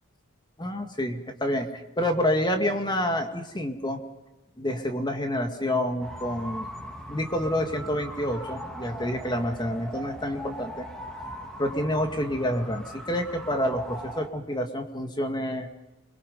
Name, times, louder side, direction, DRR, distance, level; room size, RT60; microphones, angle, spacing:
voice 1, 0.6-4.0 4.6-6.7 7.1-10.9 11.6-15.7, left 1 dB, 20° left, 5 dB, 2.1 m, -28 dB
sound 1, 6.0-14.3, equal, 5° left, 2.8 m, -39 dB
28.0 x 23.0 x 5.5 m, 1.0 s
head